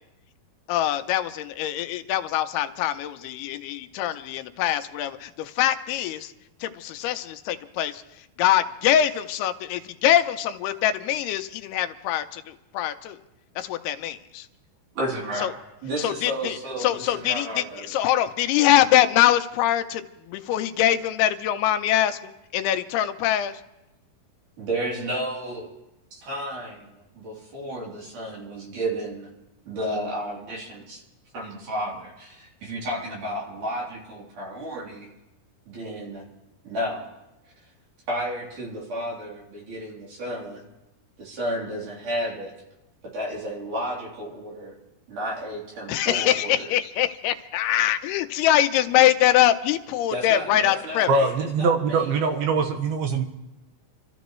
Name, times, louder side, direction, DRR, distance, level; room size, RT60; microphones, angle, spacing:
voice 1, 0.7-6.3 6.6-8.0 8.4-13.2 13.6-14.5 15.4-15.5 16.0-20.0 20.3-22.2 22.5-23.5 45.9-51.1, left 12 dB, 85° left, 9 dB, 2.7 m, -23 dB
voice 2, 15.0-15.5 15.8-17.9 24.6-25.7 26.1-29.3 29.7-31.0 31.3-35.1 35.7-36.2 36.6-37.1 38.1-40.7 41.2-42.5 43.1-44.8 45.1-46.7 50.1-52.4, right 1 dB, 55° right, -3 dB, 4.4 m, -32 dB
voice 3, 51.1-53.2, right 4 dB, 75° right, 5 dB, 3.0 m, -23 dB
28.5 x 13.5 x 3.1 m, 0.96 s
omnidirectional pair, 4.6 m